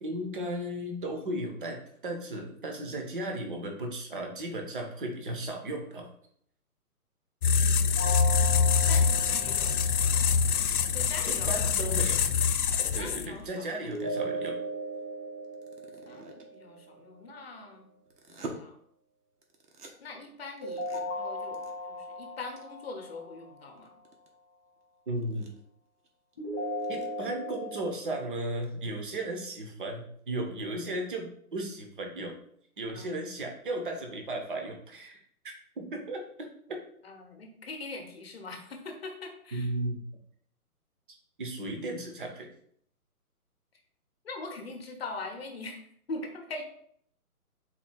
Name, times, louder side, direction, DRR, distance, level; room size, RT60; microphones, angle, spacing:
voice 1, 0.0-6.1 11.3-12.2 12.9-14.6 25.1-25.5 26.9-32.3 32.8-35.2 35.8-36.8 39.5-40.0 41.4-42.5, right 1 dB, 35° right, 2 dB, 0.7 m, -35 dB
sound 1, 7.4-13.4, left 6 dB, 70° left, 0.5 m, -25 dB
sound 2, 8.0-10.9 13.9-16.9 20.6-23.8 26.4-27.9, equal, 5° left, 0.6 m, -37 dB
voice 2, 8.9-9.9 10.7-12.0 13.0-13.9 16.0-17.9 18.3-18.8 20.0-23.9 32.9-33.3 37.0-39.7 44.2-46.6, left 3 dB, 40° left, 4 dB, 0.8 m, -42 dB
sound 3, 11.4-11.5 13.2-14.4 15.4-16.6 18.0-18.5 19.4-19.9 20.6-21.0 21.4-21.7 22.0-22.1 22.6-22.7 23.0-23.1 23.7-24.3 24.8-24.9 25.2-25.6 26.0-26.1 26.3-26.4 26.7-27.1, right 3 dB, 90° right, 1.2 m, -45 dB
4.3 x 2.7 x 4.3 m, 0.66 s
hypercardioid pair, 165°, 46 cm